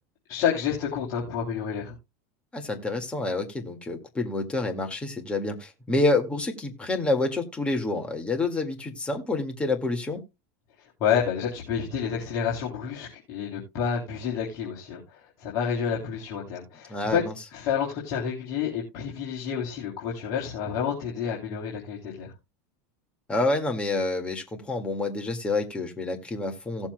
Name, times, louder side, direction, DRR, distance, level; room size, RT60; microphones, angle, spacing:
voice 1, 0.3-1.9 10.8-17.2 17.5-22.3, left 7 dB, 45° left, 3.1 m, -29 dB
voice 2, 2.5-10.2 16.9-17.3 23.3-26.9, left 2 dB, 15° left, 1.9 m, -28 dB
17.5 x 7.2 x 2.2 m
supercardioid pair, 135°, 9 cm